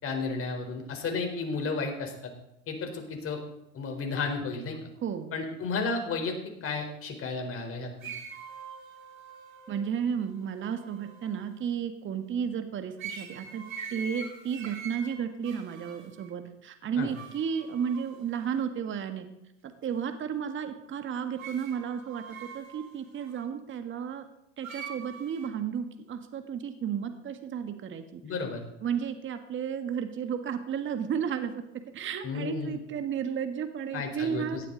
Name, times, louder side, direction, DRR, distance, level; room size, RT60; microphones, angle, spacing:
voice 1, 0.0-2.3 2.7-3.4 3.7-4.8 5.3-8.1 17.0-17.1 28.2-28.6 32.2-32.8 33.9-34.7, left 4 dB, 35° left, 3 dB, 4.1 m, -33 dB
voice 2, 5.0-5.4 9.7-13.6 13.9-19.3 19.6-24.2 24.6-28.2 28.8-31.6 31.9-34.7, right 7 dB, 30° right, 8 dB, 1.6 m, -33 dB
sound 1, 8.0-11.6 13.0-16.3 17.1-18.6 21.4-23.5 24.6-25.5, right 5 dB, 90° right, 3.1 m, -44 dB
17.0 x 12.0 x 4.0 m, 0.85 s
hypercardioid pair, 100°, 40 cm